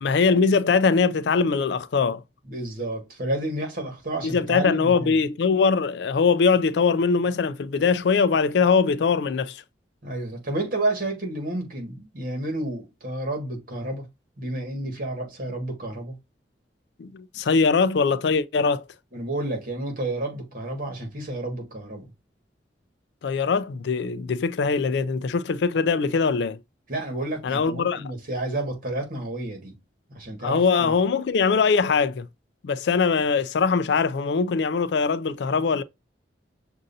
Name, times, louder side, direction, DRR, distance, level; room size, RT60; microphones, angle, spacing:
voice 1, 0.0-2.2 4.2-9.6 17.0-18.8 23.2-26.6 27.4-28.0 30.4-32.3 32.6-35.8, left 5 dB, 70° left, 0.4 m, -22 dB
voice 2, 2.5-5.2 10.0-14.1 14.4-16.2 19.1-22.1 26.9-29.7 30.1-30.9, right 1 dB, 50° right, 1.8 m, -30 dB
6.4 x 2.6 x 2.6 m
head